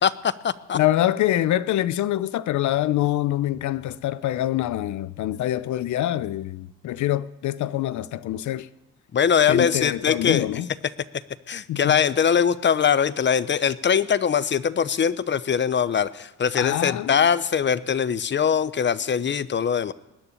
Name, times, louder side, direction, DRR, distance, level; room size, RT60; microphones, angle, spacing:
voice 1, 0.0-0.8 9.1-10.5 11.5-19.9, left 7 dB, 40° left, 0.7 m, -22 dB
voice 2, 0.7-8.7 9.5-10.7 11.7-12.0 16.5-17.2, left 13 dB, 70° left, 0.6 m, -25 dB
20.5 x 7.0 x 9.7 m
cardioid pair, 90°, 30 cm